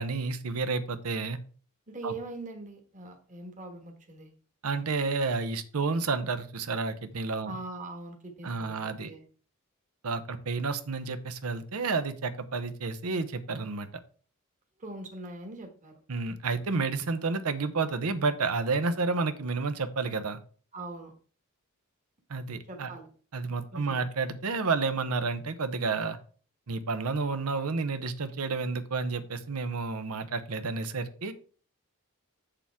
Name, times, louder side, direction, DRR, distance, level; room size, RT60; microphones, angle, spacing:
voice 1, 0.0-1.4 2.0-2.1 4.6-7.6 8.4-9.1 10.0-13.9 16.1-20.4 22.3-22.9 23.3-26.2 26.7-31.3, right 4 dB, 85° right, 10 dB, 0.8 m, -30 dB
voice 2, 1.9-4.3 7.4-9.2 14.8-15.9 20.7-21.1 22.7-23.1 23.7-24.0, right 2 dB, 35° right, 4 dB, 1.4 m, -42 dB
7.3 x 6.8 x 3.5 m, 0.41 s
head